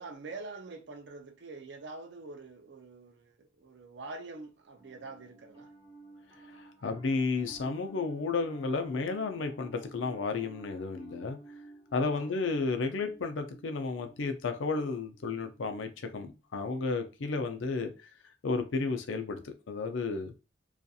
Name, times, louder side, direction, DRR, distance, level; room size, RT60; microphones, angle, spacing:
voice 1, 0.0-5.7 12.1-12.4, right 3 dB, 65° right, 0.4 m, -45 dB
Piano, 4.7-16.2, right 2 dB, 25° right, 0.9 m, -53 dB
voice 2, 6.5-11.4 11.9-18.1 18.4-20.3, left 4 dB, 85° left, 0.5 m, -32 dB
2.6 x 2.4 x 2.3 m
head